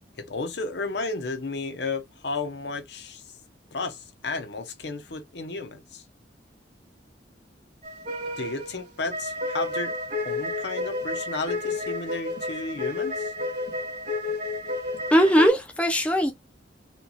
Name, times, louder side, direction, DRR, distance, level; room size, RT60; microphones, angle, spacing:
voice 1, 0.2-3.2 3.7-6.0 8.4-10.0 10.2-13.3, left 3 dB, 60° left, 0.7 m, -33 dB
sound 1, 7.8-15.5, left 2 dB, 45° right, 1.7 m, -31 dB
voice 2, 15.1-16.3, equal, 5° left, 0.4 m, -19 dB
4.3 x 2.3 x 2.7 m
head